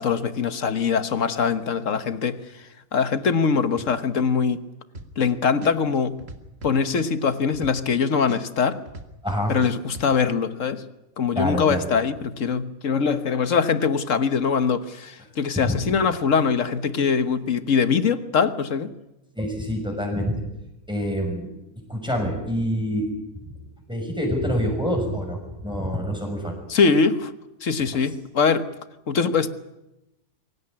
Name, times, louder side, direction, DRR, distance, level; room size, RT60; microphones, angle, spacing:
voice 1, 0.0-2.4 2.9-4.6 5.2-6.2 6.6-8.8 9.5-10.8 11.2-18.9 26.7-27.3 27.6-28.7 29.1-29.5, left 5 dB, 55° left, 11 dB, 1.5 m, -22 dB
sound 1, 4.9-5.3 5.6-8.0 8.3-10.1, right 3 dB, 45° right, 2.0 m, -39 dB
voice 2, 9.2-9.5 11.3-11.9 15.6-15.8 19.3-20.4 20.9-21.5 21.9-23.1 23.9-26.6, equal, 5° right, 0 dB, 6.2 m, -26 dB
23.5 x 16.5 x 9.7 m, 0.94 s
omnidirectional pair, 1.6 m